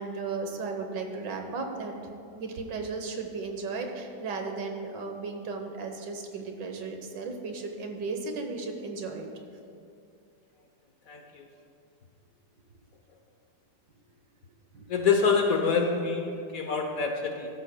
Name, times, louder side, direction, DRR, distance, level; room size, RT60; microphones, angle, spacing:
voice 1, 0.0-1.9 2.3-9.3 14.7-14.8, right 4 dB, 75° right, 4 dB, 1.7 m, -35 dB
voice 2, 14.9-17.5, left 5 dB, 60° left, 3 dB, 1.0 m, -26 dB
14.5 x 12.0 x 2.2 m, 2.4 s
omnidirectional pair, 2.0 m